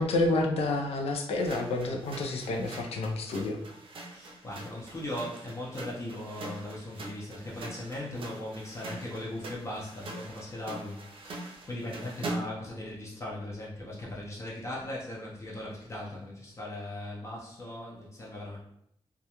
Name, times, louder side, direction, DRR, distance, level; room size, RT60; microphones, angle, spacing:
voice 1, 0.0-3.6, left 2 dB, 85° left, 2 dB, 0.4 m, -29 dB
sound 1, 1.3-12.7, right 2 dB, 65° right, 0.4 m, -43 dB
voice 2, 4.0-18.6, left 1 dB, 30° left, -5 dB, 0.5 m, -39 dB
2.3 x 2.1 x 2.8 m, 0.73 s
wide cardioid pair, 175°, 10 cm